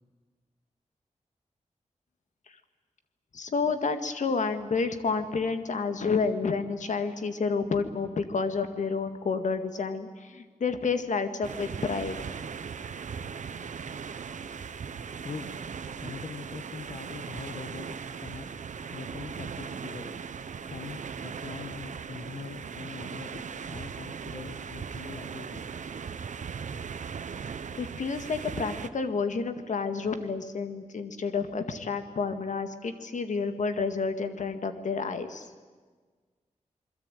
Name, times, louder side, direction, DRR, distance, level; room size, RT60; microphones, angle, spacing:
voice 1, 3.3-12.2 27.8-35.5, left 4 dB, 80° left, 8 dB, 2.1 m, -30 dB
sound 1, 11.4-28.9, right 6 dB, 85° right, 1.1 m, -38 dB
voice 2, 15.2-15.6 16.0-20.2 20.6-25.7, left 5 dB, 60° left, 8 dB, 1.3 m, -43 dB
28.0 x 22.0 x 9.2 m, 1.4 s
wide cardioid pair, 150°, 13 cm